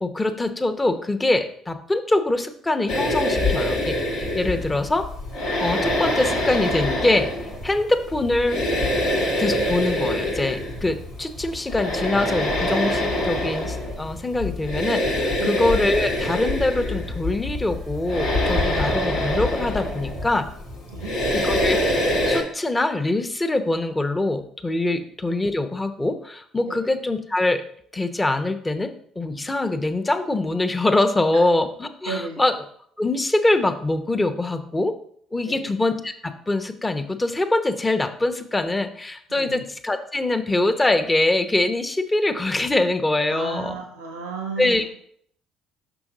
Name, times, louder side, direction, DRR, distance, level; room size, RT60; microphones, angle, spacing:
voice 1, 0.0-5.1 5.6-8.6 9.4-20.5 21.3-27.6 27.9-32.6 33.0-35.0 35.3-43.8 44.6-44.8, left 2 dB, 20° left, 8 dB, 0.8 m, -24 dB
sound 1, 2.9-22.4, left 1 dB, 75° left, 1.4 m, -25 dB
voice 2, 32.0-32.4 35.4-35.7 39.3-39.6 43.3-44.8, right 4 dB, 85° right, 3 dB, 0.7 m, -33 dB
6.0 x 5.8 x 3.8 m, 0.63 s
figure-of-eight pair, 50°, 0 cm